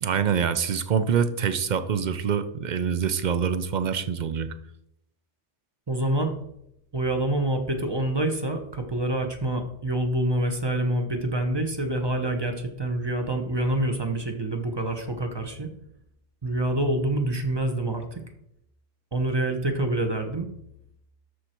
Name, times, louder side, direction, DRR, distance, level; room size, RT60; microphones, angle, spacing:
voice 1, 0.0-4.6, right 7 dB, 50° right, 12 dB, 0.6 m, -25 dB
voice 2, 5.9-6.3 6.9-15.7 16.4-18.2 19.1-20.5, right 1 dB, 25° right, 5 dB, 1.0 m, -26 dB
13.0 x 4.7 x 4.4 m, 0.78 s
omnidirectional pair, 1.2 m